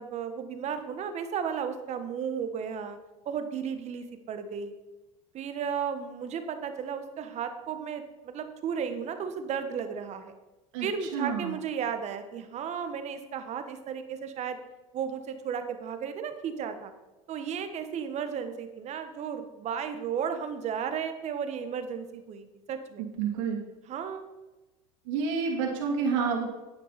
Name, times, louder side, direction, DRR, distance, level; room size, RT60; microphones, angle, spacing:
voice 1, 0.0-3.0 3.2-4.7 5.3-10.3 10.8-14.6 14.9-16.9 17.3-23.0 23.9-24.3, right 7 dB, 45° right, 8 dB, 1.4 m, -34 dB
voice 2, 10.7-11.6 23.2-23.6 25.1-26.5, right 5 dB, 75° right, -1 dB, 2.8 m, -29 dB
10.0 x 9.5 x 4.2 m, 1.1 s
supercardioid pair, 95°, 16 cm